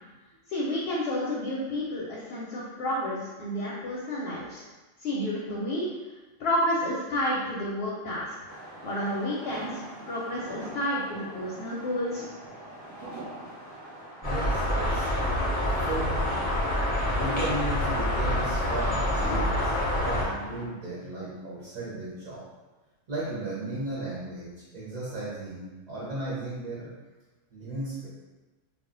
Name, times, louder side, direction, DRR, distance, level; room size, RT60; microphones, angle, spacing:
voice 1, 0.5-4.6 5.0-5.9 6.4-8.4 8.8-12.2, left 1 dB, 65° left, -5 dB, 0.7 m, -30 dB
sound 1, 8.5-20.6, right 1 dB, 15° right, 0.8 m, -42 dB
sound 2, 14.2-20.3, left 1 dB, 35° left, 0.5 m, -27 dB
voice 2, 14.2-15.1 15.6-16.4 17.2-22.5 23.1-26.9 27.5-28.1, right 2 dB, 45° right, -7 dB, 0.5 m, -35 dB
2.2 x 2.0 x 3.7 m, 1.2 s
omnidirectional pair, 1.3 m